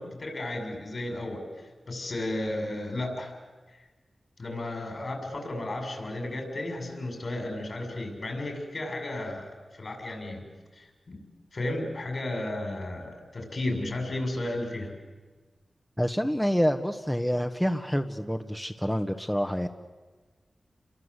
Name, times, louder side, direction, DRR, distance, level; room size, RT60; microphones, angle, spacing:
voice 1, 0.0-3.3 4.4-10.4 10.8-11.2 11.5-15.0, left 1 dB, 60° left, 4 dB, 7.0 m, -33 dB
voice 2, 16.0-19.7, equal, 5° left, 5 dB, 1.5 m, -27 dB
28.5 x 23.0 x 8.3 m, 1.3 s
cardioid pair, 40°, 0 cm